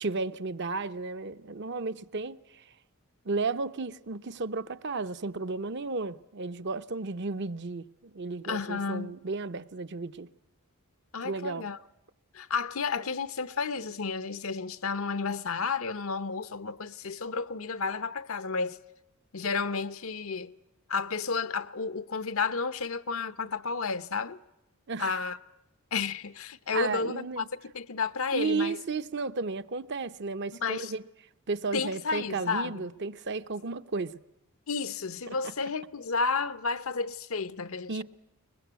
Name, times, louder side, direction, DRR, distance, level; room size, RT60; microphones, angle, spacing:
voice 1, 0.0-2.7 3.2-10.3 11.2-11.7 24.9-25.2 26.7-27.5 28.3-31.0 31.5-34.2 37.9-38.0, right 3 dB, 50° right, 0.7 m, -33 dB
voice 2, 8.4-9.1 11.1-11.8 12.3-18.8 19.3-20.5 20.9-24.4 25.0-25.4 25.9-27.4 27.7-28.8 30.6-30.9 31.7-32.9 34.7-38.0, left 4 dB, 70° left, 0.8 m, -32 dB
22.5 x 20.5 x 8.2 m
head